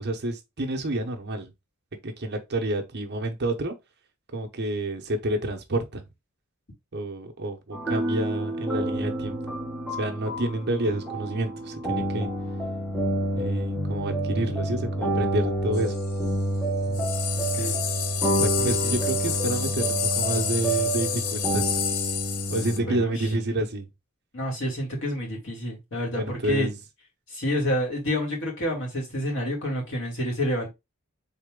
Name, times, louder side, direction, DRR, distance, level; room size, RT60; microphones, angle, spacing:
voice 1, 0.0-1.5 2.0-3.8 4.3-6.0 6.9-9.4 9.9-12.3 13.3-16.0 18.4-21.8 22.5-23.9 26.1-26.8, right 1 dB, 50° right, 0.9 m, -29 dB
sound 1, 7.7-23.0, right 1 dB, ahead, 1.2 m, -28 dB
sound 2, 15.7-16.1 16.9-22.8, left 9 dB, 85° left, 0.7 m, -29 dB
voice 2, 17.3-17.8 18.6-18.7 22.9-23.2 24.3-26.7 27.3-30.7, left 1 dB, 60° left, 2.4 m, -29 dB
4.3 x 3.3 x 3.7 m
head